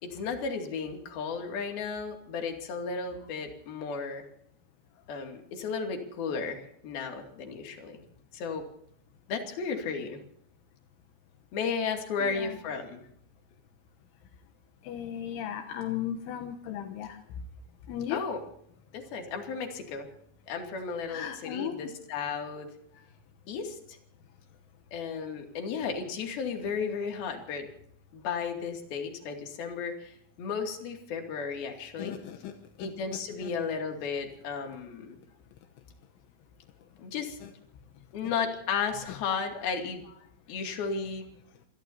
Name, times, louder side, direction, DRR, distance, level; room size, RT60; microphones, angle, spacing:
voice 1, 0.0-4.2 5.1-8.0 8.3-8.6 9.3-10.2 11.5-13.0 18.1-18.4 18.9-20.1 20.5-22.7 23.5-24.0 24.9-27.7 28.1-32.2 32.8-35.2 37.0-37.4 38.1-40.0 40.5-41.3, left 5 dB, 55° left, 4 dB, 4.1 m, -34 dB
voice 2, 12.2-12.6 14.9-17.2 17.9-18.2 21.1-21.8 32.0-32.5 32.8-32.9 33.4-33.5 37.4-37.5, left 10 dB, 80° left, 6 dB, 3.5 m, -36 dB
26.5 x 19.0 x 2.8 m, 0.67 s
omnidirectional pair, 5.5 m